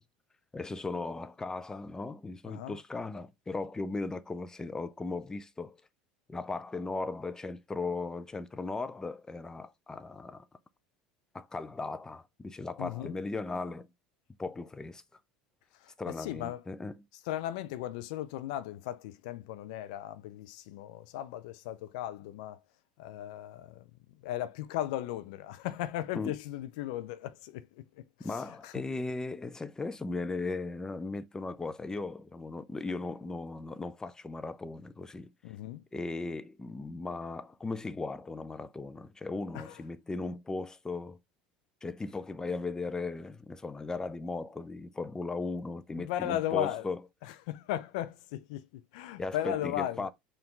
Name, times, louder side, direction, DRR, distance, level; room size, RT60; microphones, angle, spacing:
voice 1, 0.5-5.8 6.3-10.4 11.3-13.9 14.4-15.0 16.0-16.9 26.1-26.3 28.2-35.3 35.9-41.2 41.8-47.0 49.2-50.1, left 3 dB, 15° left, 0.5 m, -37 dB
voice 2, 2.5-2.8 12.8-13.2 15.8-16.6 17.3-22.6 23.0-23.8 24.2-27.8 28.5-28.7 35.4-35.8 39.5-39.7 46.0-46.8 47.2-50.1, left 13 dB, 70° left, 0.5 m, -36 dB
4.7 x 2.5 x 3.7 m
hypercardioid pair, 85°, 4 cm